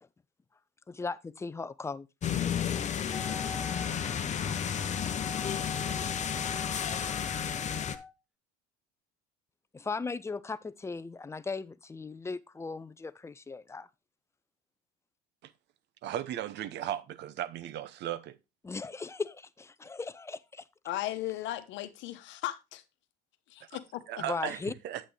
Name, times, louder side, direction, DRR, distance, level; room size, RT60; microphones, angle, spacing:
voice 1, 0.9-2.1 9.7-13.9 18.6-20.7 24.2-24.7, left 4 dB, 15° left, 0.5 m, -37 dB
sound 1, 2.2-8.0, left 8 dB, 35° left, 0.8 m, -32 dB
Wind instrument woodwind instrument, 3.1-8.1, left 3 dB, 5° right, 1.0 m, -44 dB
voice 2, 16.0-18.4 24.1-24.6 24.8-25.0, right 11 dB, 60° right, 0.8 m, -36 dB
voice 3, 20.8-22.8 23.5-24.0, left 14 dB, 65° left, 1.0 m, -36 dB
8.1 x 7.5 x 3.3 m
supercardioid pair, 90°, 20 cm